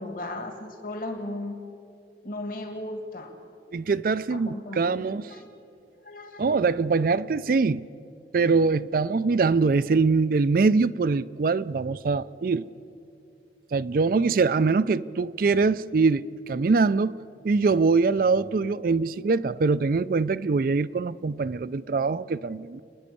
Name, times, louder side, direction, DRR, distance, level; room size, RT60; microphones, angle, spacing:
voice 1, 0.0-1.6 2.2-3.3 4.3-5.5 6.0-6.6, left 1 dB, 50° left, 1.9 m, -36 dB
voice 2, 3.7-5.2 6.4-7.8 8.3-12.7 13.7-17.2 17.4-22.8, right 4 dB, 55° right, 0.4 m, -23 dB
29.5 x 10.5 x 8.4 m
head